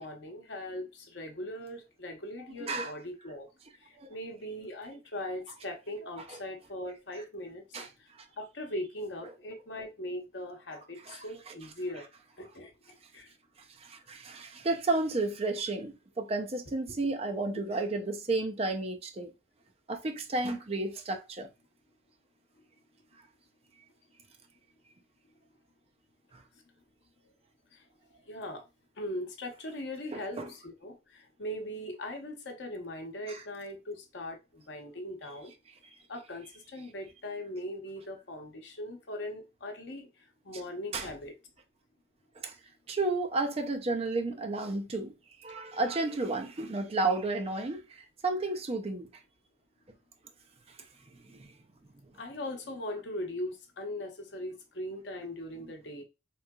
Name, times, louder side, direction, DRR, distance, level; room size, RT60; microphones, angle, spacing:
voice 1, 0.0-3.5 3.8-8.1 8.4-12.1 12.4-12.7 13.1-13.3 17.0-17.2 27.7-27.8 28.3-28.6 29.0-35.5 36.1-40.1 40.4-41.3 52.2-56.0, left 1 dB, 70° left, 0.8 m, -40 dB
voice 2, 2.6-2.9 4.0-4.1 7.7-7.9 11.1-11.2 13.8-19.3 19.9-21.5 30.1-30.5 33.3-33.4 40.9-41.1 42.4-42.5 42.9-45.1 45.4-47.8 48.2-49.1 51.3-51.4, right 2 dB, 35° right, 0.5 m, -32 dB
3.8 x 3.1 x 2.2 m
head